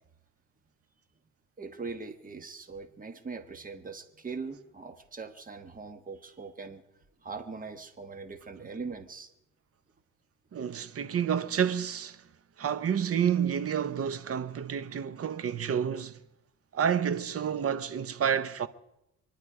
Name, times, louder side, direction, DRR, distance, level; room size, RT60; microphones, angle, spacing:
voice 1, 1.6-6.8 7.2-9.3, right 4 dB, 30° right, 1.4 m, -41 dB
voice 2, 10.5-12.2 12.6-16.1 16.7-18.7, right 8 dB, 50° right, 1.0 m, -29 dB
24.0 x 11.0 x 4.9 m
cardioid pair, 90°, 30 cm